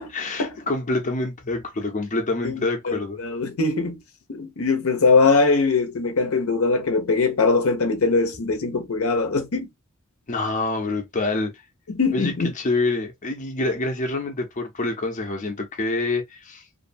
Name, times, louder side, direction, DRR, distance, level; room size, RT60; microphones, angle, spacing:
voice 1, 0.1-3.2 10.3-11.5 12.1-16.6, left 2 dB, 35° left, 0.6 m, -26 dB
voice 2, 2.4-4.0 4.3-9.7 11.9-12.5, left 4 dB, 75° left, 0.6 m, -21 dB
2.5 x 2.2 x 2.6 m
head